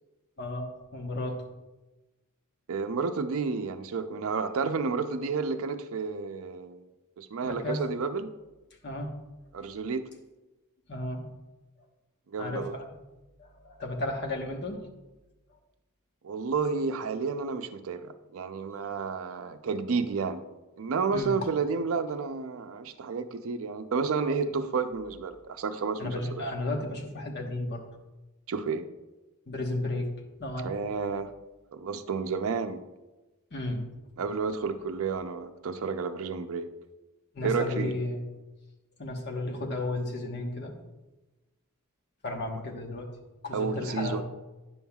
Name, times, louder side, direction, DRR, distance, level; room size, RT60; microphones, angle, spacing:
voice 1, 0.4-1.4 7.4-7.8 8.8-9.1 10.9-11.3 12.4-12.8 13.4-14.9 21.1-21.5 26.0-27.8 29.5-30.1 30.4-30.7 33.5-33.9 37.3-38.2 39.0-40.7 42.2-43.1 43.4-44.2, left 2 dB, 50° left, 2 dB, 1.1 m, -33 dB
voice 2, 2.7-6.8 7.2-8.3 9.5-10.1 12.3-12.7 16.2-20.4 20.8-26.4 28.5-28.9 30.6-31.3 31.7-32.8 34.2-36.7 37.4-37.9 43.5-44.2, right 5 dB, 65° right, 10 dB, 0.5 m, -31 dB
10.0 x 7.1 x 2.3 m, 1.1 s
head